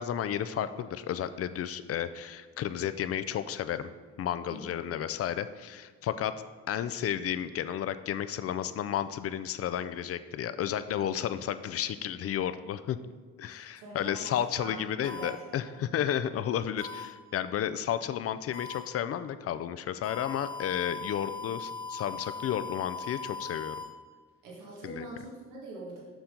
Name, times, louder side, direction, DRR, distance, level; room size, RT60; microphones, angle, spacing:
voice 1, 0.0-3.9 4.2-6.3 6.7-13.0 13.4-23.8 24.8-25.1, left 10 dB, 50° left, 12 dB, 0.4 m, -32 dB
voice 2, 13.5-15.3 15.7-15.8 24.4-26.0, right 2 dB, 90° right, -4 dB, 1.6 m, -44 dB
sound 1, 15.0-15.3 16.8-17.0 18.5-18.8 20.0-23.8, left 4 dB, 75° left, 1.3 m, -39 dB
7.0 x 5.6 x 3.8 m, 1.4 s
cardioid pair, 90°, 30 cm